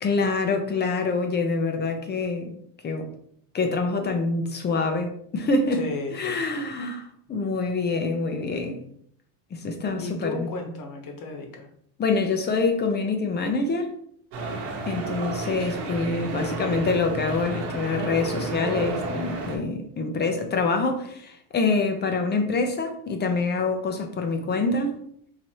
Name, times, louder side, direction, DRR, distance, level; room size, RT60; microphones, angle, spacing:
voice 1, 0.0-2.5 2.8-3.1 3.5-5.8 6.1-8.8 9.5-10.5 12.0-13.9 14.9-25.0, left 3 dB, 20° left, 5 dB, 0.5 m, -26 dB
voice 2, 5.7-6.7 10.0-11.7, left 3 dB, 45° left, 3 dB, 1.1 m, -34 dB
sound 1, 14.3-19.6, right 3 dB, 90° right, 1.1 m, -31 dB
4.7 x 2.8 x 2.9 m, 0.66 s
supercardioid pair, 120°, 47 cm